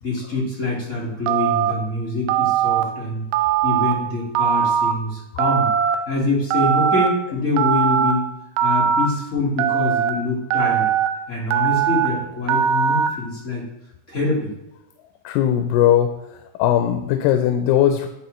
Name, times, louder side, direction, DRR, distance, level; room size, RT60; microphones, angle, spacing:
voice 1, 0.0-3.2 3.6-5.7 6.1-8.3 8.6-10.9 11.3-13.6 14.1-14.5, left 2 dB, 50° left, -5 dB, 0.9 m, -25 dB
Telephone, 1.3-1.7 2.3-2.8 3.3-3.9 4.4-4.9 5.4-6.0 6.5-7.1 7.6-8.1 8.6-9.1 9.6-10.1 10.5-11.1 11.5-12.1 12.5-13.1, right 9 dB, 80° right, 1.8 m, -19 dB
voice 2, 15.3-16.2 16.6-18.1, left 11 dB, 90° left, 7 dB, 2.3 m, -18 dB
9.6 x 5.2 x 3.1 m, 0.89 s
omnidirectional pair, 3.9 m